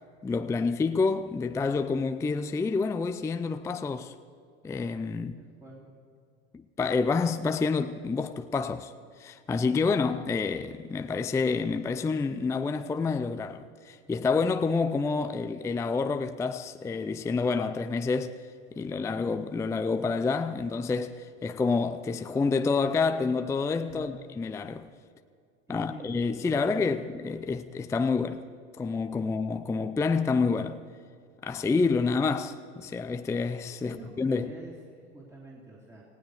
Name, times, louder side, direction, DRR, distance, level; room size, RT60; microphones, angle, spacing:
voice 1, 0.2-4.1 4.6-5.4 6.5-8.9 9.2-18.3 18.7-24.9 25.7-28.4 28.8-30.8 31.4-34.5, left 4 dB, 10° left, 0.4 m, -28 dB
voice 2, 5.4-5.9 23.8-24.2 25.7-26.9 33.8-36.0, right 2 dB, 10° right, 2.8 m, -46 dB
18.5 x 16.0 x 4.7 m
hypercardioid pair, 95°, 36 cm